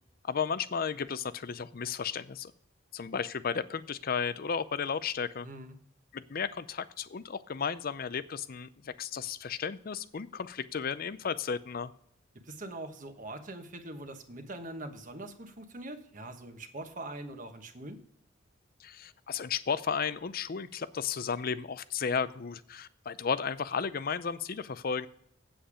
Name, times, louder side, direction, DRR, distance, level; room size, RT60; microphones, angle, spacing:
voice 1, 0.2-2.5 2.9-5.5 6.1-11.9 18.8-25.1, left 6 dB, 50° left, 15 dB, 0.5 m, -34 dB
voice 2, 5.4-5.8 12.4-18.0, right 1 dB, 40° right, 6 dB, 1.2 m, -43 dB
8.6 x 7.9 x 4.9 m, 0.71 s
head